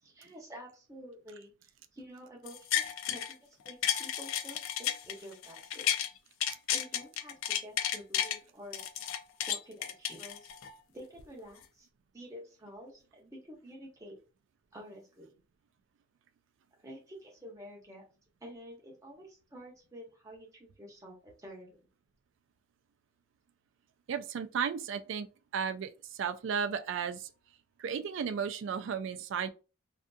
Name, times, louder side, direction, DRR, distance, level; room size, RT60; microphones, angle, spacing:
voice 1, 0.0-6.0 6.7-8.8 9.5-10.5 10.9-11.9 12.1-14.2 14.7-15.3 16.8-18.0 18.4-21.9, equal, 15° right, 0.8 m, -49 dB
sound 1, 2.5-3.3 3.7-6.1 6.4-8.4 8.7-10.7 11.2-11.3, left 10 dB, 85° left, 0.3 m, -32 dB
voice 2, 24.1-25.3 25.5-27.3 27.8-29.5, right 7 dB, 70° right, 0.3 m, -34 dB
2.6 x 2.4 x 2.2 m
head